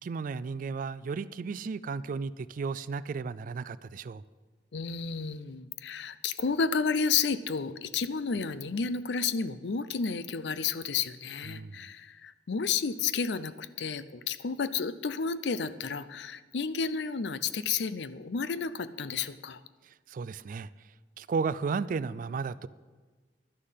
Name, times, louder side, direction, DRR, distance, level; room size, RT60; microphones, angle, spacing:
voice 1, 0.0-4.2 11.5-11.9 19.8-20.7 21.2-22.7, right 5 dB, 50° right, 16 dB, 0.3 m, -34 dB
voice 2, 4.7-19.6, left 5 dB, 70° left, 14 dB, 0.5 m, -31 dB
11.5 x 10.0 x 5.7 m, 1.4 s
head